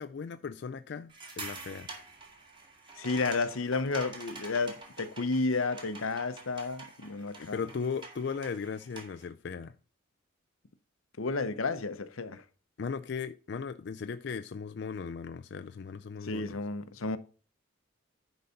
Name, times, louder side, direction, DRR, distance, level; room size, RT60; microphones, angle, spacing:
voice 1, 0.0-1.9 7.4-9.7 12.8-16.6, left 5 dB, 55° left, 0.4 m, -37 dB
sound 1, 1.1-9.2, right 3 dB, 25° right, 1.8 m, -47 dB
voice 2, 3.0-7.6 11.2-12.4 16.2-17.2, left 3 dB, 90° left, 0.8 m, -32 dB
10.0 x 4.1 x 5.6 m
head